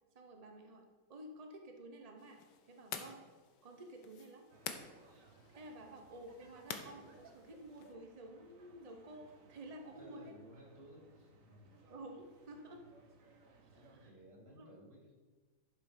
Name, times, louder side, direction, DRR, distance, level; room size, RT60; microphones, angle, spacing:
voice 1, 0.1-3.2 3.6-4.5 5.5-10.3 11.9-12.8 13.7-14.1 14.5-14.7, right 1 dB, 75° right, 3 dB, 0.3 m, -52 dB
sound 1, 2.2-7.9, left 7 dB, 60° left, 1.3 m, -50 dB
sound 2, 4.5-14.1, right 3 dB, 45° right, 1.2 m, -63 dB
voice 2, 10.0-11.7 13.7-15.1, right 1 dB, 30° right, -4 dB, 2.7 m, -58 dB
11.0 x 7.2 x 5.1 m, 1.3 s
omnidirectional pair, 2.4 m